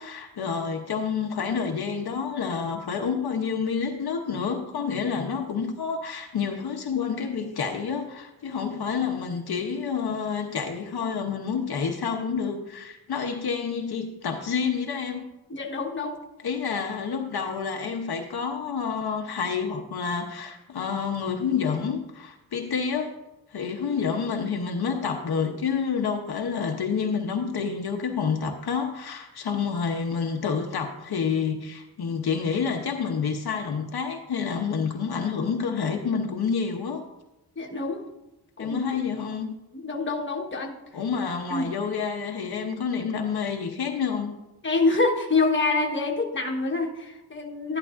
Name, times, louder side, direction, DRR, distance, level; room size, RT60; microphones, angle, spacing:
voice 1, 0.0-15.3 16.4-23.2 23.5-37.0 38.6-39.5 40.9-44.3, left 6 dB, 70° left, 3 dB, 0.8 m, -28 dB
voice 2, 15.5-16.1 37.6-38.0 38.6-38.8 39.7-40.7 41.5-41.7 44.6-47.8, left 3 dB, 30° left, 1 dB, 1.2 m, -26 dB
12.0 x 11.0 x 2.5 m, 0.96 s
wide cardioid pair, 125°, 39 cm